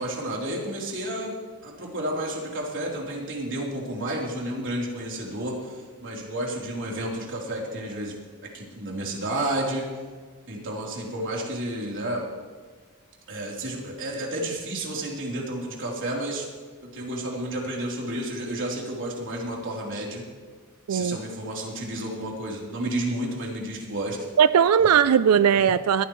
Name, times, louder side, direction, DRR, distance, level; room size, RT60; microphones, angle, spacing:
voice 1, 0.0-1.3 1.6-8.1 8.4-9.9 10.5-12.3 13.3-16.5 16.8-20.3 20.9-24.2, right 1 dB, 60° right, -2 dB, 3.6 m, -31 dB
voice 2, 24.4-26.0, right 8 dB, 85° right, 15 dB, 0.4 m, -19 dB
21.0 x 15.5 x 3.2 m, 1.5 s
head